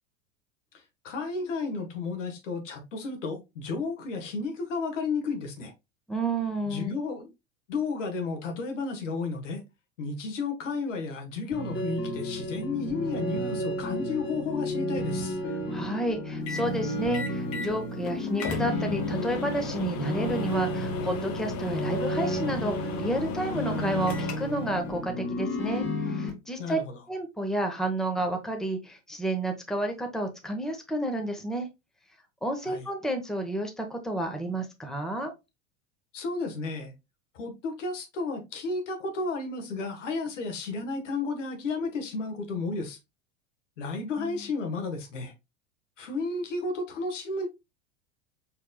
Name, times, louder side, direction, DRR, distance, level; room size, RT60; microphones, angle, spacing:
voice 1, 1.0-5.7 6.6-7.3 7.7-9.6 10.0-15.4 26.6-27.0 32.7-32.9 36.1-36.9 37.3-43.0 43.8-45.3 46.0-47.5, left 3 dB, 85° left, 1.5 m, -32 dB
voice 2, 6.1-7.0 15.7-26.8 27.1-31.7 32.4-35.3 44.2-44.5, right 1 dB, ahead, 1.0 m, -31 dB
sound 1, 11.5-26.3, left 1 dB, 30° left, 2.1 m, -32 dB
sound 2, 16.5-16.7 17.1-17.7 18.1-18.2 18.4-24.7, left 3 dB, 60° left, 1.1 m, -36 dB
4.6 x 3.5 x 2.3 m
hypercardioid pair, 100°, 36 cm